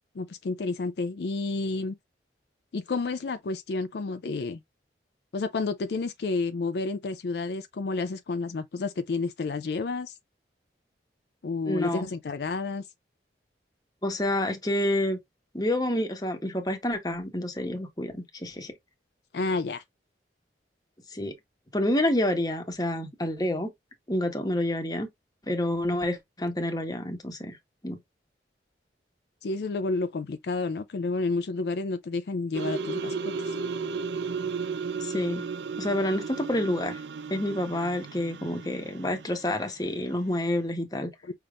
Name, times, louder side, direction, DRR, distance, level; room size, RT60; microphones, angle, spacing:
voice 1, 0.2-1.9 2.7-4.6 5.3-10.1 11.4-12.8 19.3-19.8 29.4-33.6, left 3 dB, 65° left, 0.4 m, -30 dB
voice 2, 11.7-12.1 14.0-15.2 15.5-18.7 21.1-21.3 21.7-23.7 24.1-25.1 25.5-27.6 27.8-28.0 35.0-35.5 35.8-37.0 37.3-41.1, left 1 dB, 20° left, 1.1 m, -28 dB
sound 1, 32.5-39.7, right 4 dB, 75° right, 0.5 m, -34 dB
5.6 x 3.4 x 2.4 m
head